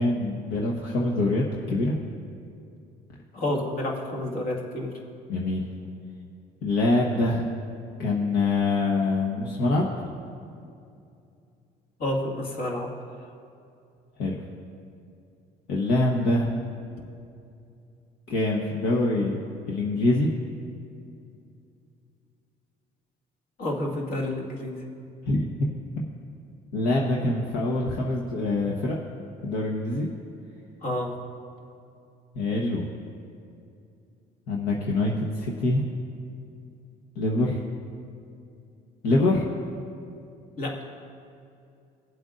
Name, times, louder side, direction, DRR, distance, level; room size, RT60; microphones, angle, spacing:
voice 1, 0.0-1.9 5.3-5.6 6.6-7.5 8.0-10.1 14.2-14.4 15.7-16.5 18.3-19.4 19.7-20.3 25.3-25.7 26.7-29.0 29.4-30.1 32.3-32.9 34.5-35.8 37.1-37.6 39.0-39.4, left 2 dB, 80° left, -2 dB, 1.2 m, -24 dB
voice 2, 3.3-4.9 12.0-12.9 23.6-24.8 30.8-31.1 40.6-40.8, left 1 dB, 60° left, -1 dB, 2.0 m, -29 dB
20.5 x 7.9 x 2.5 m, 2.5 s
cardioid pair, 110°, 17 cm